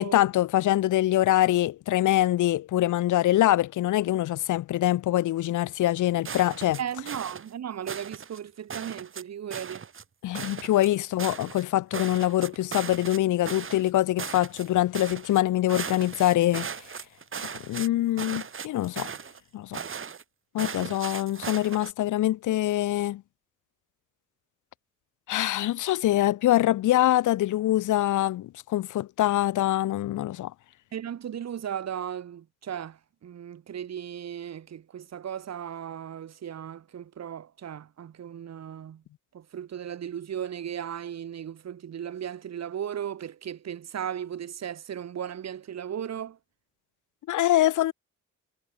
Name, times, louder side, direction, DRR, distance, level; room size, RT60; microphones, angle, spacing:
voice 1, 0.0-6.8 10.2-16.8 17.4-19.1 19.5-19.8 20.5-23.2 25.3-30.5 47.3-47.9, left 14 dB, 85° left, 3.3 m, -24 dB
sound 1, 6.2-7.5 7.9-8.4 8.7-9.2 9.5-10.0 10.3-11.6 11.9-13.2 13.4-13.9 14.2-14.7 14.9-15.4 15.7-17.9 18.2-19.4 19.7-20.2 20.6-21.9, right 6 dB, 45° right, 5.5 m, -37 dB
voice 2, 6.8-9.9 30.9-39.0 39.3-46.4, right 9 dB, 60° right, 5.0 m, -36 dB
cardioid pair, 90°, 30 cm